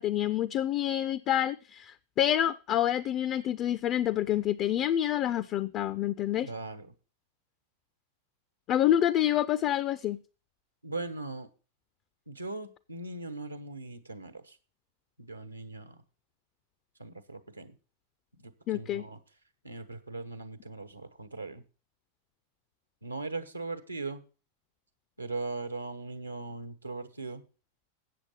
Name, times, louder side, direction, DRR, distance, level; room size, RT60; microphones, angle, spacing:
voice 1, 0.0-6.5 8.7-10.2 18.7-19.0, left 11 dB, 35° left, 0.4 m, -27 dB
voice 2, 6.4-6.9 10.8-11.5 12.3-14.6 15.2-16.0 17.0-17.8 18.3-19.2 19.6-21.6 23.0-24.2 25.2-27.4, right 3 dB, 85° right, 1.1 m, -39 dB
8.5 x 7.2 x 6.7 m
figure-of-eight pair, 90°, 0 cm